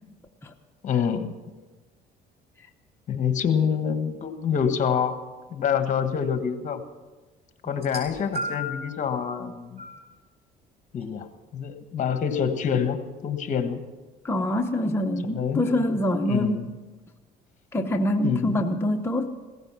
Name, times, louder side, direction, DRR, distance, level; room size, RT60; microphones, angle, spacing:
voice 1, 0.8-1.3 3.1-6.8 7.6-9.8 10.9-13.8 15.3-15.9 16.3-16.7 18.2-18.6, left 7 dB, 45° left, 8 dB, 1.5 m, -26 dB
sound 1, 7.7-8.9 9.8-10.0 11.0-11.1, left 1 dB, 40° right, 5.9 m, -33 dB
voice 2, 14.2-16.6 17.7-19.4, left 1 dB, 15° left, 2 dB, 0.9 m, -25 dB
16.5 x 14.5 x 5.8 m, 1.2 s
cardioid pair, 110°, 17 cm